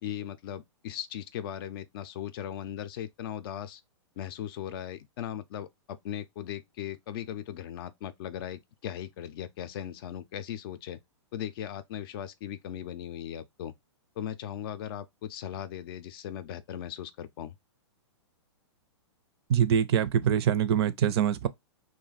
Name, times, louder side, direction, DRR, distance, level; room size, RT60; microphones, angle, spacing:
voice 1, 0.0-3.8 4.2-11.0 11.3-13.7 14.2-17.6, left 10 dB, 50° left, 0.5 m, -38 dB
voice 2, 19.5-21.5, right 9 dB, 55° right, 0.4 m, -24 dB
2.5 x 2.1 x 3.9 m
hypercardioid pair, 120°, 15 cm